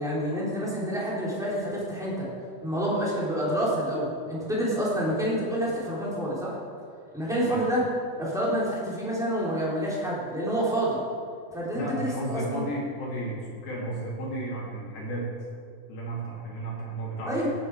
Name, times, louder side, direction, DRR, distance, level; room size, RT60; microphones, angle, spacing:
voice 1, 0.0-2.3 2.6-6.6 7.1-7.8 8.2-11.0 11.5-12.6 17.3-17.5, equal, ahead, -7 dB, 3.8 m, -28 dB
voice 2, 11.7-15.2 15.9-17.3, right 1 dB, 90° left, -6 dB, 4.8 m, -33 dB
16.5 x 10.5 x 5.0 m, 2.3 s
omnidirectional pair, 4.1 m